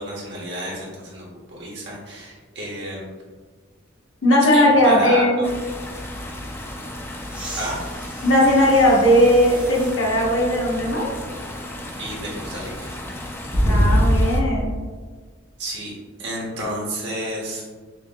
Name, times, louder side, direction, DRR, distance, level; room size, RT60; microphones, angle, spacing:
voice 1, 0.0-3.1 4.5-5.5 7.5-7.8 12.0-12.9 15.6-15.9 16.2-17.6, right 1 dB, 60° right, -4 dB, 1.1 m, -31 dB
voice 2, 4.2-5.4 8.2-11.1 13.6-14.7, equal, 75° left, -3 dB, 1.1 m, -17 dB
sound 1, 5.4-14.4, left 1 dB, 10° left, 0.3 m, -34 dB
sound 2, 7.3-10.0 10.7-10.8 13.5-14.7 16.6-16.7, equal, 5° right, 0.9 m, -24 dB
5.7 x 2.8 x 2.2 m, 1.4 s
head